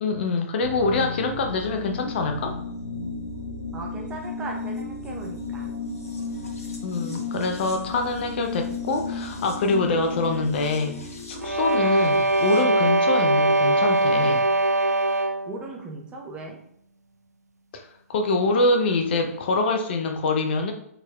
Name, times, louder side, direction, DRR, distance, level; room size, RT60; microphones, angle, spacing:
voice 1, 0.0-2.6 6.8-14.4 17.7-20.7, left 3 dB, 40° left, 5 dB, 0.6 m, -25 dB
sound 1, 0.6-12.6, left 3 dB, 65° left, 1.0 m, -34 dB
voice 2, 3.7-5.7 15.5-16.6, right 2 dB, 10° right, 0 dB, 0.6 m, -37 dB
sound 2, 11.4-15.6, right 2 dB, 85° right, 0.4 m, -21 dB
4.1 x 4.0 x 2.3 m, 0.69 s
figure-of-eight pair, 125°, 8 cm